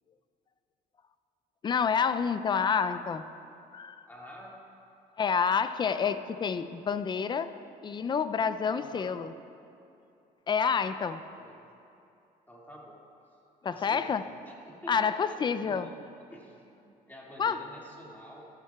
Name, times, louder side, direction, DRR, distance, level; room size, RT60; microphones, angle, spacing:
voice 1, 1.6-3.2 3.7-4.0 5.2-7.5 7.8-9.3 10.5-11.2 13.6-14.2 14.9-15.9 17.4-17.6, left 6 dB, 25° left, 12 dB, 0.4 m, -28 dB
voice 2, 4.1-4.6 8.7-9.3 10.9-11.0 11.3-11.7 12.5-13.0 13.7-14.2 14.5-16.0 16.3-18.4, equal, 10° left, -4 dB, 2.1 m, -48 dB
14.0 x 12.5 x 2.3 m, 2.7 s
cardioid pair, 110°, 17 cm